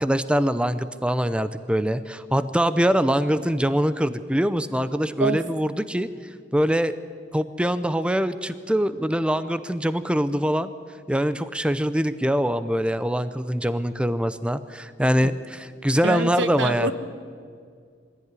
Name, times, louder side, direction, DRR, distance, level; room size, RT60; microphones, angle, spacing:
voice 1, 0.0-6.9 7.3-10.7 11.1-16.9, equal, 5° right, 13 dB, 0.6 m, -23 dB
voice 2, 16.0-16.9, right 2 dB, 85° right, 11 dB, 1.4 m, -26 dB
23.0 x 16.0 x 9.8 m, 2.1 s
head